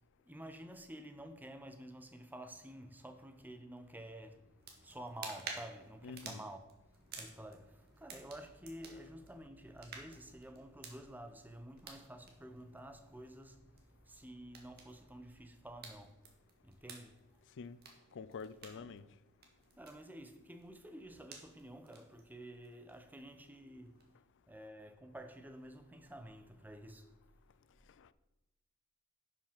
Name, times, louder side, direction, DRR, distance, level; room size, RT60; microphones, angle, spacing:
voice 1, 0.2-16.2 16.6-17.4 18.7-18.9 19.8-24.1 24.5-27.2, right 1 dB, 10° right, 0.7 m, -51 dB
sound 1, 4.6-24.1, right 4 dB, 45° right, 1.7 m, -55 dB
voice 2, 6.0-6.5 17.6-17.8 18.1-19.0 28.0-28.1, left 5 dB, 55° left, 0.4 m, -47 dB
11.0 x 5.6 x 5.1 m
head